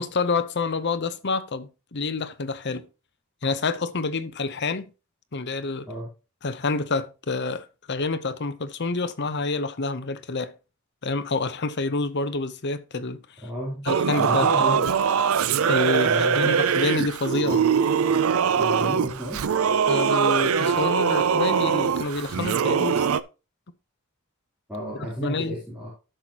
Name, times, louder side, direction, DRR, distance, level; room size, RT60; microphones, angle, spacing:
voice 1, 0.0-2.9 3.4-4.9 5.3-5.9 6.4-10.5 11.0-13.2 13.8-14.9 15.7-17.6 19.9-23.1 25.2-25.5, left 3 dB, 50° left, 0.8 m, -28 dB
voice 2, 13.4-13.8 14.2-14.9 16.1-16.6 18.5-19.4 24.7-25.9, equal, 5° right, 3.5 m, -32 dB
Singing / Musical instrument, 13.9-23.2, right 7 dB, 75° right, 0.5 m, -22 dB
12.5 x 6.1 x 2.9 m
head